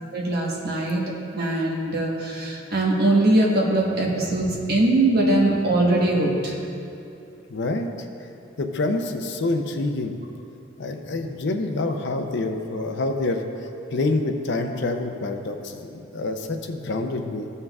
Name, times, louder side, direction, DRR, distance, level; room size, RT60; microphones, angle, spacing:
voice 1, 0.1-1.0 1.3-6.5 11.0-11.2, right 2 dB, 50° right, -2 dB, 1.2 m, -21 dB
voice 2, 7.5-7.9 8.6-10.1 10.8-17.5, left 2 dB, 60° left, 5 dB, 0.6 m, -27 dB
15.5 x 5.5 x 2.4 m, 2.6 s
head